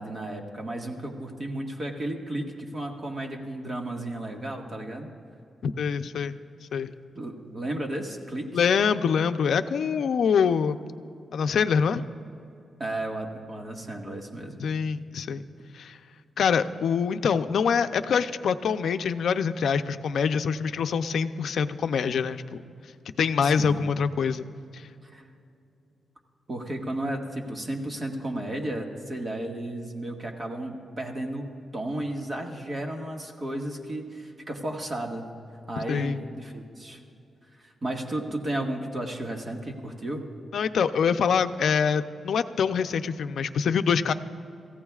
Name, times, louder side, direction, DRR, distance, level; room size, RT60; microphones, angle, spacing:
voice 1, 0.0-5.1 7.2-8.5 12.8-14.6 23.4-23.8 25.0-25.3 26.5-35.3 35.7-37.0 37.6-40.2, right 1 dB, 35° right, 1 dB, 1.8 m, -33 dB
voice 2, 5.6-6.3 6.7-6.9 8.5-10.8 11.3-12.0 14.6-15.4 15.7-16.0 16.4-22.6 23.2-24.4 24.7-24.8 35.9-36.2 40.5-44.1, left 6 dB, 75° left, 9 dB, 0.5 m, -25 dB
27.5 x 15.0 x 2.4 m, 2.6 s
cardioid pair, 105°, 0 cm